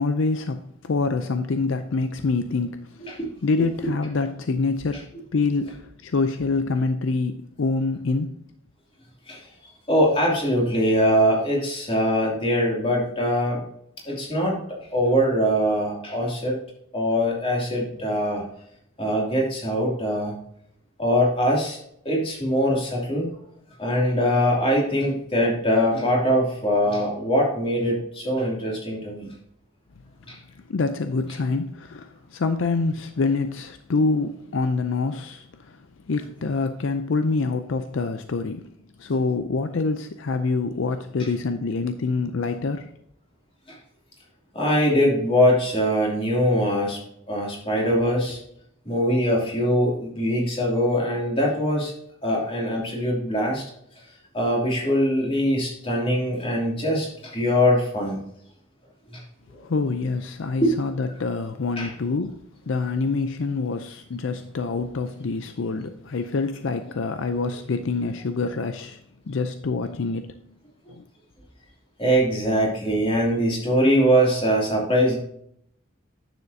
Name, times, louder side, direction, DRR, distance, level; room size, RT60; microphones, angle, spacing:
voice 1, 0.0-8.4 30.7-38.7 39.0-42.9 59.6-69.0 69.3-70.5 70.9-71.0, left 3 dB, 70° left, 0.5 m, -26 dB
voice 2, 9.9-13.6 14.0-14.6 14.9-16.6 16.9-18.4 19.0-20.4 21.0-21.8 22.0-23.3 23.8-29.3 30.3-30.4 43.7-43.8 44.5-47.0 47.3-48.4 48.8-51.9 52.2-53.6 54.3-58.2 59.1-59.2 60.6-60.7 61.8-61.9 72.0-75.2, equal, 25° left, 2.6 m, -22 dB
9.7 x 7.1 x 2.7 m
head